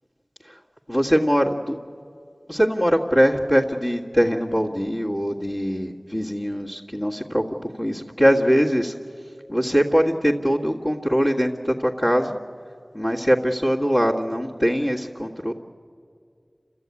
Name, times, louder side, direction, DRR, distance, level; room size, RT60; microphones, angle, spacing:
voice 1, 0.9-1.8 2.5-7.4 7.8-8.9 9.5-12.4 12.9-15.5, equal, 35° left, -7 dB, 1.8 m, -22 dB
30.0 x 14.0 x 9.6 m, 2.2 s
wide cardioid pair, 50°, 0 cm